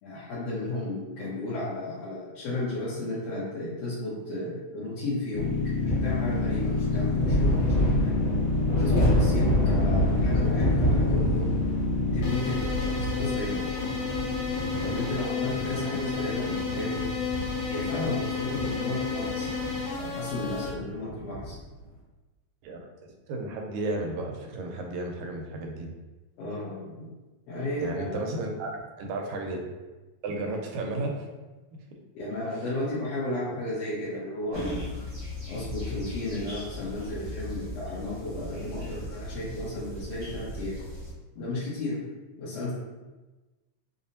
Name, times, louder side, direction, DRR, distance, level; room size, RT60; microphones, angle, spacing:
voice 1, 0.0-8.2 8.7-11.6 12.1-13.6 14.8-17.1 17.7-19.5 20.0-21.6 26.4-27.1 27.5-28.3 32.1-34.8 35.5-40.8 41.3-42.0 42.4-42.7, left 2 dB, 65° left, -11 dB, 1.6 m, -33 dB
sound 1, 5.3-20.7, left 4 dB, 90° left, 2.1 m, -29 dB
sound 2, 5.8-21.6, equal, 50° left, 1.2 m, -29 dB
voice 2, 22.6-25.9 27.8-28.7 29.0-29.6 30.2-31.1, right 2 dB, 85° right, 2 dB, 1.9 m, -33 dB
sound 3, 34.5-41.1, left 1 dB, 60° right, 0.8 m, -37 dB
5.1 x 2.0 x 2.7 m, 1.2 s
omnidirectional pair, 3.3 m